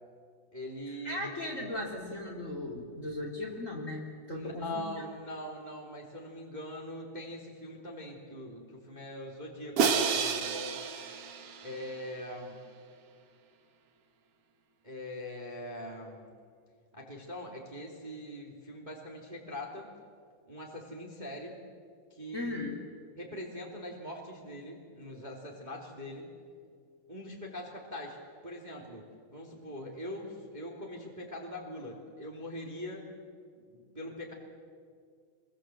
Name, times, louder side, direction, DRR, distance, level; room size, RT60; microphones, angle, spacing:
voice 1, 0.5-1.4 4.3-10.6 11.6-12.6 14.8-16.3 16.9-19.9 20.5-21.6 22.1-22.5 23.2-26.3 27.1-28.2 28.4-33.1 33.7-34.3, left 1 dB, 15° right, -1 dB, 2.4 m, -42 dB
voice 2, 1.0-4.8 22.3-22.8, left 2 dB, 20° left, 1 dB, 2.7 m, -37 dB
Crash cymbal, 9.8-12.0, right 6 dB, 70° right, 1.4 m, -30 dB
28.0 x 22.5 x 7.8 m, 2.2 s
omnidirectional pair, 4.6 m